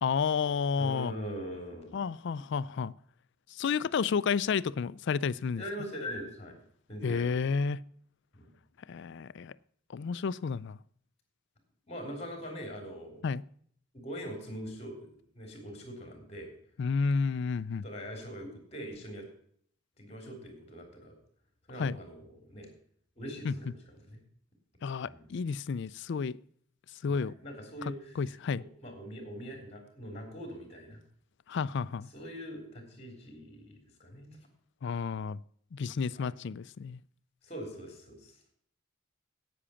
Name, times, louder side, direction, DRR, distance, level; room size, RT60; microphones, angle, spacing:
voice 1, 0.0-1.1 1.9-2.9 3.5-5.6 7.0-7.8 8.9-9.5 9.9-10.8 13.2-13.4 16.8-17.8 21.8-22.0 23.4-23.5 24.8-26.4 27.0-27.3 28.2-28.6 31.5-32.1 34.8-35.4 35.7-37.0, left 5 dB, 55° left, 0.4 m, -31 dB
voice 2, 0.8-2.0 5.6-6.6 6.9-7.4 8.4-8.5 11.9-13.2 13.9-16.5 17.8-19.3 20.0-21.1 21.7-22.7 23.2-24.2 25.0-25.3 27.1-28.4 28.8-31.0 32.1-34.4 36.1-36.3 37.4-38.4, equal, 30° left, 3.5 m, -42 dB
10.0 x 8.7 x 7.0 m
head